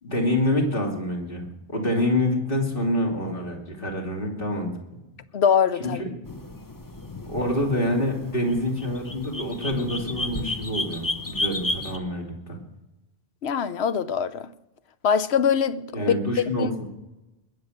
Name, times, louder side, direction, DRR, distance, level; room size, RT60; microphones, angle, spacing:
voice 1, 0.0-4.7 5.8-6.0 7.3-12.6 15.9-16.9, left 1 dB, 50° left, 3.1 m, -26 dB
voice 2, 5.3-6.0 13.4-14.5 15.0-16.1 16.6-16.9, left 7 dB, 70° left, 1.0 m, -23 dB
sound 1, 6.2-12.0, left 2 dB, 20° left, 0.9 m, -32 dB
21.0 x 8.1 x 6.6 m
omnidirectional pair, 1.1 m